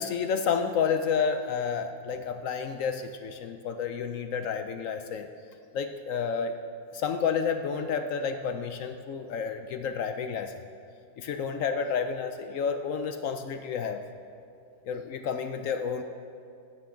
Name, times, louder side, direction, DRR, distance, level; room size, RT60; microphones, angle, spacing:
voice 1, 0.0-5.3 5.7-6.6 6.9-10.5 11.2-14.0 14.9-16.0, left 6 dB, 70° left, 8 dB, 0.8 m, -30 dB
18.5 x 9.2 x 3.8 m, 2.5 s
omnidirectional pair, 1.8 m